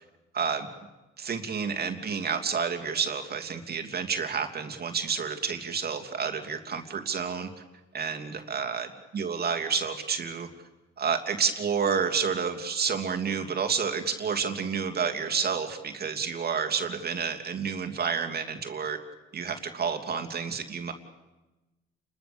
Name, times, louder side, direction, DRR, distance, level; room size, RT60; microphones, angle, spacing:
voice 1, 0.3-0.7 1.2-7.5 7.9-8.9 9.1-10.5 11.0-19.0 19.3-20.9, right 6 dB, 50° right, 5 dB, 2.9 m, -30 dB
29.5 x 21.5 x 7.1 m, 1.1 s
cardioid pair, 90°, 20 cm